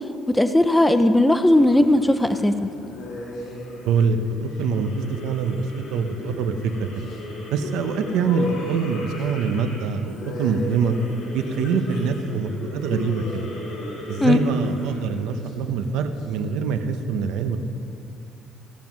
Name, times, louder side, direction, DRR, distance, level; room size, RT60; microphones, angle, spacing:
voice 1, 0.3-2.7 14.2-14.4, left 1 dB, 5° left, 9 dB, 0.4 m, -17 dB
sound 1, 1.3-16.2, left 1 dB, 60° left, 2.9 m, -35 dB
voice 2, 3.8-6.9 7.5-11.0 11.3-13.5 14.1-17.6, right 5 dB, 85° right, 8 dB, 0.9 m, -24 dB
17.0 x 7.4 x 6.1 m, 2.6 s
cardioid pair, 175°, 0 cm